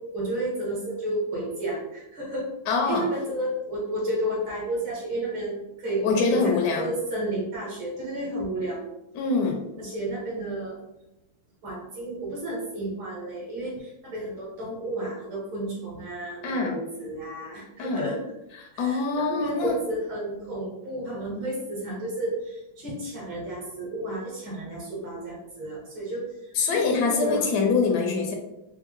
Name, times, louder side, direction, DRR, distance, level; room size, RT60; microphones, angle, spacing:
voice 1, 0.0-2.5 2.8-8.8 9.8-10.8 11.6-18.2 18.7-27.5, right 1 dB, 70° right, -5 dB, 2.3 m, -32 dB
voice 2, 2.7-3.0 6.0-6.9 9.1-9.6 16.4-16.7 17.8-18.0 18.6-19.7 26.6-28.3, left 4 dB, 75° left, 1 dB, 0.9 m, -24 dB
4.5 x 2.1 x 3.0 m, 0.91 s
omnidirectional pair, 2.3 m